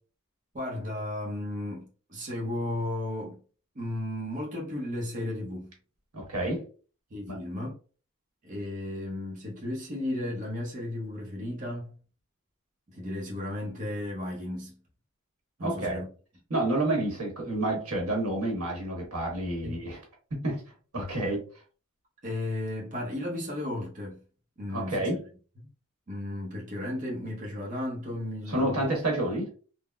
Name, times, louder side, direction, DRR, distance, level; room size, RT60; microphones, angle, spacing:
voice 1, 0.5-3.4 3.7-5.7 7.1-7.7 8.4-11.9 12.9-14.7 15.6-16.1 19.6-19.8 21.2-21.3 22.2-24.2 24.6-25.1 26.1-28.9, left 1 dB, 35° right, 0.7 m, -34 dB
voice 2, 6.1-6.6 7.3-7.4 15.6-16.0 16.5-20.0 20.3-20.6 20.9-21.4 24.7-25.2 28.5-29.5, right 1 dB, 85° right, 1.3 m, -29 dB
3.6 x 2.0 x 2.2 m
head